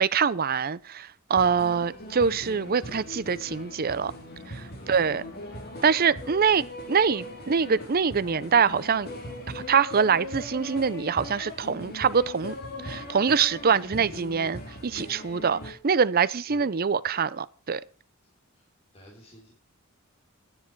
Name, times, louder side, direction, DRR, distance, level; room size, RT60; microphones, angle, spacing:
voice 1, 0.0-4.1 4.5-5.2 5.8-9.1 9.5-12.6 12.8-17.8, right 6 dB, 45° right, 0.6 m, -24 dB
sound 1, 1.3-15.7, left 1 dB, 45° left, 3.1 m, -40 dB
voice 2, 4.7-5.0 6.3-6.4 13.8-13.9 16.5-16.7 18.5-18.6 18.9-19.5, equal, 30° left, 3.4 m, -50 dB
12.0 x 9.9 x 4.6 m
head